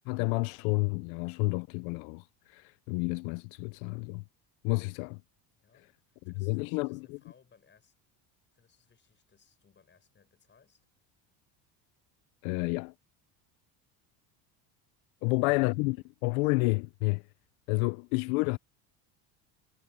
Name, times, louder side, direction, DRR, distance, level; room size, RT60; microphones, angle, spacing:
voice 1, 0.1-4.2 4.6-5.2 6.4-7.2 12.4-12.9 15.2-16.0 16.2-17.2 17.7-18.6, left 27 dB, 85° left, 0.6 m, -30 dB
voice 2, 5.5-8.0 8.5-10.9 15.2-16.0, left 6 dB, 25° left, 5.7 m, -64 dB
cardioid pair, 140°, 45 cm